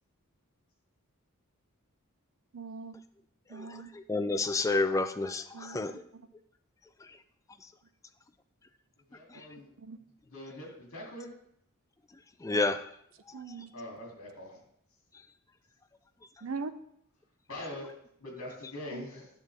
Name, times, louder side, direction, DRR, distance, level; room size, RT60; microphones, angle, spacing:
voice 1, 2.5-3.0 3.5-3.9 5.5-5.9 9.8-10.0 13.3-13.7 16.4-16.7 18.9-19.1, right 4 dB, 65° right, 11 dB, 0.5 m, -40 dB
voice 2, 3.5-5.9 9.3-9.4 12.4-12.9, left 3 dB, 15° left, 10 dB, 0.3 m, -30 dB
voice 3, 9.1-9.7 10.3-11.3 13.7-14.6 17.5-17.9 18.2-19.3, left 1 dB, 70° left, -1 dB, 2.5 m, -43 dB
9.6 x 6.3 x 3.4 m, 0.71 s
head